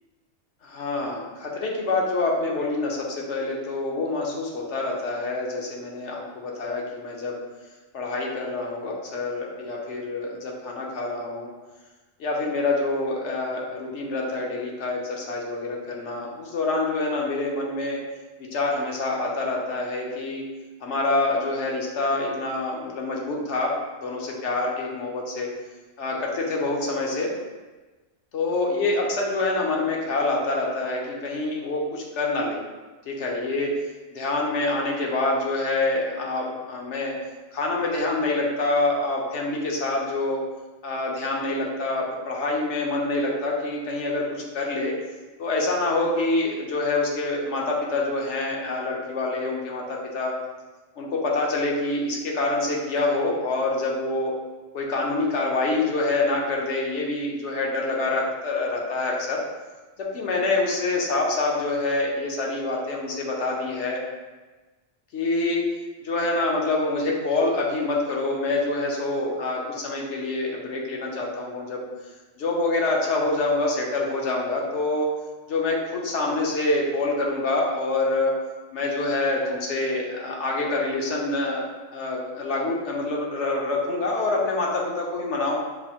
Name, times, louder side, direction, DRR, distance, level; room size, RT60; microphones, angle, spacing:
voice 1, 0.6-7.4 7.9-11.5 12.2-18.0 18.4-20.4 20.8-23.7 24.0-25.5 26.0-27.3 28.3-32.6 33.1-33.7 34.1-37.1 37.5-40.4 40.8-44.9 45.4-50.3 51.0-54.3 54.7-59.4 60.0-64.0 65.1-65.6 66.0-71.8 72.4-75.1 75.5-78.3 78.7-81.6 81.9-85.5, left 2 dB, 65° left, -1 dB, 1.0 m, -26 dB
6.1 x 2.5 x 2.9 m, 1.3 s
omnidirectional pair, 1.3 m